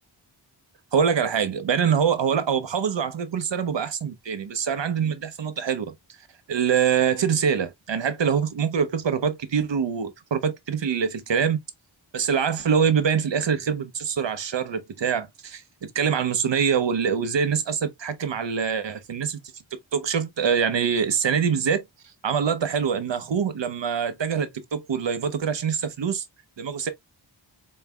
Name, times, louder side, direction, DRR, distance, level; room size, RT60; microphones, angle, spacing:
voice 1, 0.9-5.9 6.5-11.6 12.1-19.4 19.9-21.8 22.2-26.2 26.6-26.9, right 7 dB, 65° right, 0.9 m, -24 dB
4.2 x 3.8 x 2.2 m
wide cardioid pair, 90°, 47 cm